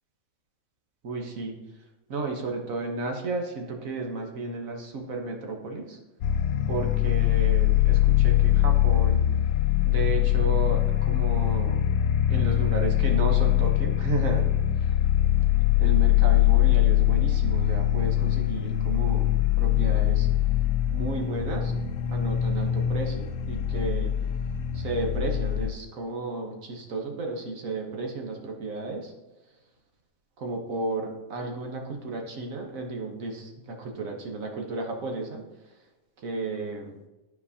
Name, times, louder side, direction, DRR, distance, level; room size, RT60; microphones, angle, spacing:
voice 1, 1.0-1.6 2.1-6.0 6.7-9.2 9.9-11.8 12.3-14.5 14.8-14.9 15.8-20.3 20.9-21.7 22.1-24.1 24.7-29.1 30.4-35.4 36.2-37.0, right 3 dB, 70° right, 2 dB, 1.4 m, -33 dB
sound 1, 6.2-25.7, left 12 dB, 70° left, 0.9 m, -23 dB
12.0 x 4.6 x 2.7 m, 1.1 s
omnidirectional pair, 1.5 m